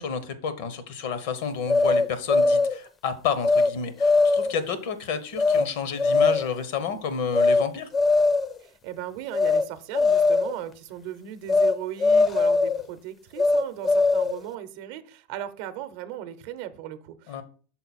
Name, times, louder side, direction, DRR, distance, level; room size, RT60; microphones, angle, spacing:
voice 1, 0.0-7.9 17.3-17.4, left 6 dB, 70° left, 12 dB, 0.9 m, -30 dB
sound 1, 1.7-2.8 3.4-3.7 4.0-4.6 5.4-5.6 6.0-6.5 7.3-7.6 7.9-8.6 9.3-9.6 9.9-10.6 11.5-11.7 12.0-12.8 13.4-14.4, left 3 dB, 25° left, 0.5 m, -20 dB
voice 2, 8.6-17.4, right 11 dB, 65° right, 12 dB, 0.6 m, -37 dB
5.9 x 4.0 x 4.1 m, 0.40 s
hypercardioid pair, 100°, 0 cm